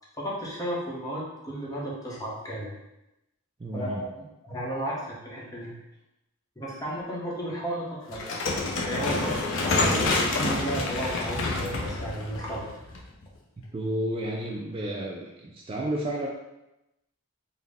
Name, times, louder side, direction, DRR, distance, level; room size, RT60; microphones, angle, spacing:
voice 1, 0.2-2.7 3.7-4.1 4.4-5.8 6.6-8.4 8.7-12.7, right 1 dB, 15° left, -5 dB, 0.8 m, -33 dB
voice 2, 3.6-4.1 13.7-16.3, right 1 dB, 25° right, -2 dB, 0.3 m, -31 dB
sound 1, 8.1-13.3, left 3 dB, 65° left, 0.5 m, -28 dB
4.0 x 2.1 x 3.5 m, 0.93 s
head